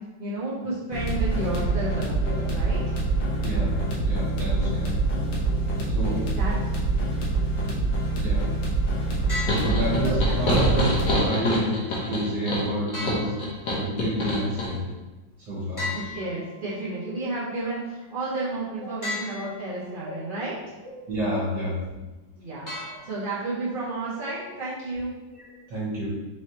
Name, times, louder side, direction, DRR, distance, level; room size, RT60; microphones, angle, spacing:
voice 1, 0.2-2.8 5.9-6.5 10.0-10.2 15.9-20.6 22.4-22.7 23.0-25.1, right 2 dB, 80° right, -9 dB, 0.4 m, -32 dB
sound 1, 0.9-11.1, right 2 dB, 70° left, 1.6 m, -25 dB
voice 2, 4.1-5.0 5.9-6.3 8.2-8.5 9.5-14.8 15.4-15.9 20.1-20.2 21.1-21.8 25.3-26.1, right 1 dB, 60° right, -8 dB, 1.7 m, -29 dB
sound 2, 9.3-10.3 12.9-14.0 15.8-17.0 19.0-20.0 22.7-23.6, left 3 dB, 15° left, 0.8 m, -36 dB
sound 3, 9.5-14.7, left 1 dB, 55° left, 1.1 m, -26 dB
4.5 x 3.3 x 2.8 m, 1.1 s
omnidirectional pair, 2.2 m